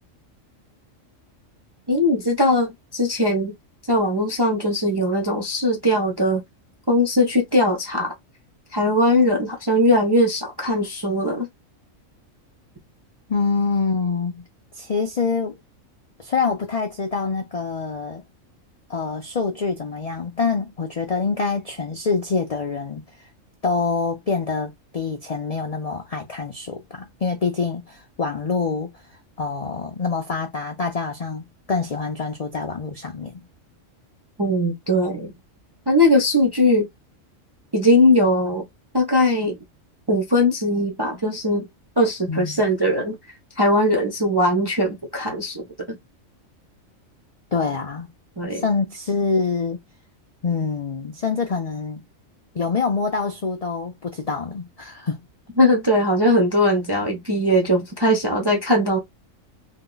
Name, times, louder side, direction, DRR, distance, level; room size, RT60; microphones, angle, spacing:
voice 1, 1.9-3.5 3.9-6.4 6.9-8.1 8.7-11.5 34.4-35.3 35.9-36.9 37.7-38.7 38.9-39.6 40.1-41.7 42.0-43.2 43.6-46.0 48.4-48.6 55.6-59.0, left 1 dB, 40° right, 0.3 m, -20 dB
voice 2, 13.3-14.4 14.7-15.6 16.2-18.2 18.9-23.0 23.6-28.9 29.4-33.4 42.3-42.6 47.5-48.1 48.5-49.8 50.4-52.0 52.5-55.2, left 4 dB, 65° left, 0.3 m, -25 dB
2.7 x 2.1 x 3.8 m
omnidirectional pair, 1.4 m